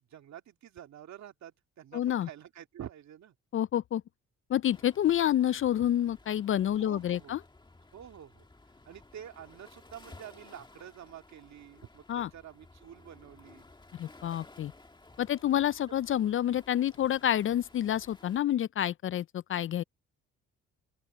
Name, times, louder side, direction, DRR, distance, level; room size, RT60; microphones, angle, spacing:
voice 1, 0.1-3.3 6.8-7.4 7.9-8.4 8.9-13.7, right 10 dB, 65° right, 2.2 m, -48 dB
voice 2, 1.9-2.3 3.5-4.0 4.5-7.4 12.1-12.3 14.0-14.7 15.2-19.8, left 11 dB, 45° left, 0.4 m, -28 dB
Waves surf, 4.7-18.4, left 2 dB, 15° left, 2.0 m, -56 dB
open air
cardioid pair, 90°, 30 cm